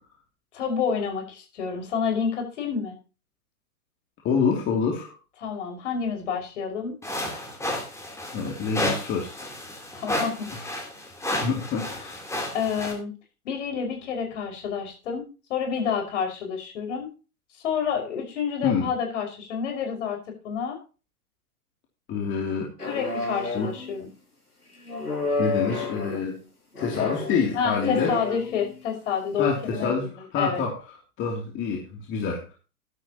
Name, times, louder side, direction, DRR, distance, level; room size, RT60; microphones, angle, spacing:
voice 1, 0.5-3.0 5.4-7.0 9.9-10.6 11.4-11.5 12.5-13.1 13.4-17.1 17.6-20.2 20.4-20.8 22.9-24.1 27.5-30.1 30.4-30.6, left 6 dB, 50° left, 3 dB, 5.6 m, -29 dB
voice 2, 4.2-5.1 8.3-9.4 10.6-10.7 11.4-12.2 18.6-18.9 22.1-22.7 23.5-23.7 25.4-26.4 26.8-28.2 29.4-30.8 31.2-32.5, left 5 dB, 25° left, -1 dB, 2.9 m, -27 dB
sound 1, 7.0-12.9, left 1 dB, 5° left, 3.4 m, -32 dB
sound 2, 22.8-23.9 24.9-26.2 26.7-28.8 29.6-29.9, left 3 dB, 85° left, 6.5 m, -30 dB
14.0 x 11.5 x 2.9 m, 0.33 s
figure-of-eight pair, 110°, 45 cm